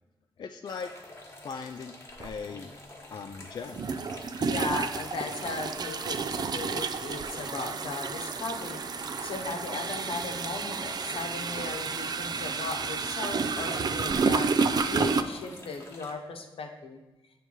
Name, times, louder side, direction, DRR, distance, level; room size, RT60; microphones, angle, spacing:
voice 1, 0.4-0.9 1.4-1.9 2.2-2.7 3.1-3.9, left 5 dB, 50° left, 5 dB, 0.3 m, -38 dB
sound 1, 0.7-16.1, left 2 dB, 30° left, 1.2 m, -48 dB
sound 2, 2.2-2.3 3.7-15.2, right 5 dB, 45° right, 0.4 m, -30 dB
voice 2, 4.4-8.8 9.2-14.5 14.9-17.0, left 3 dB, 80° left, 3 dB, 0.9 m, -37 dB
8.7 x 3.3 x 4.6 m, 1.1 s
wide cardioid pair, 115°, 9 cm